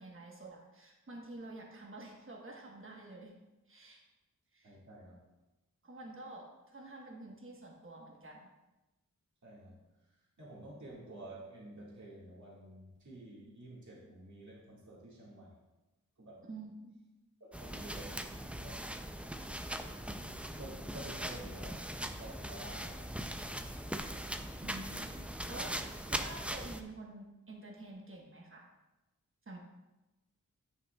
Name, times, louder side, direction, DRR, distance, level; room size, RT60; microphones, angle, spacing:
voice 1, 0.0-3.3 3.7-4.0 4.5-4.8 5.8-8.5 16.5-17.0 24.6-25.8 26.1-28.7 29.5-29.6, right 2 dB, 35° right, 0 dB, 1.2 m, -49 dB
voice 2, 4.6-5.2 9.4-9.8 10.4-15.5 16.2-16.4 17.6-18.2 18.6-18.9 19.2-19.4 19.9-20.2 20.6-21.7 22.2-23.2, right 1 dB, 55° right, -5 dB, 1.8 m, -50 dB
sound 1, 17.5-26.8, right 1 dB, 5° right, 0.4 m, -40 dB
9.9 x 5.6 x 2.3 m, 1.0 s
wide cardioid pair, 75°, 34 cm